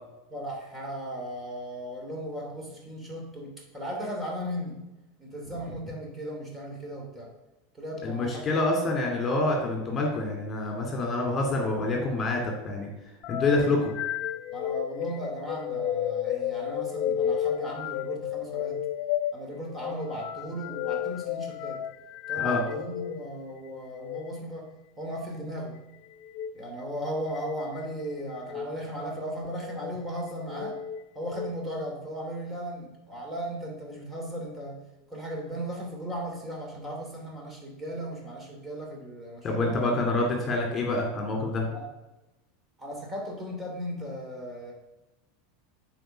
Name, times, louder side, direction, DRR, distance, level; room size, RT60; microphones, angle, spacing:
voice 1, 0.3-4.7 5.2-7.3 7.7-8.7 14.5-18.8 19.3-21.8 22.3-24.7 25.0-25.7 26.5-30.8 31.1-34.8 35.1-39.8 41.7-41.9 42.8-44.7, equal, 15° right, -1 dB, 2.9 m, -36 dB
voice 2, 8.0-12.9 13.3-13.9 22.4-22.6 39.4-41.7, left 2 dB, 30° left, 1 dB, 2.5 m, -27 dB
sound 1, 13.2-23.2 23.9-24.2 26.2-26.5 27.3-27.9 28.4-28.7 29.5-30.0 30.5-31.5, left 10 dB, 55° left, 0.5 m, -32 dB
7.8 x 4.7 x 6.3 m, 1.0 s
hypercardioid pair, 85°, 0 cm